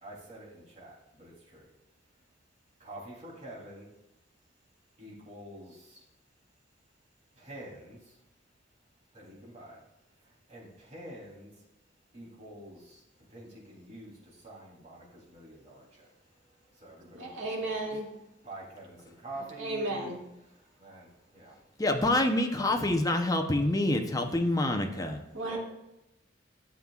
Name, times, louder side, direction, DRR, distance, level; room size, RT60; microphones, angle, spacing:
voice 1, 0.0-1.7 2.8-3.9 5.0-6.1 7.4-8.2 9.1-9.8 10.2-11.7 12.1-17.9 18.4-20.1 20.4-21.7 24.9-25.6, right 1 dB, 40° right, -4 dB, 3.4 m, -48 dB
voice 2, 17.1-18.1 19.6-20.2 25.3-25.6, right 2 dB, 70° right, -3 dB, 2.4 m, -34 dB
voice 3, 21.8-25.2, left 1 dB, 20° left, 4 dB, 0.8 m, -26 dB
13.0 x 7.3 x 2.4 m, 0.92 s
head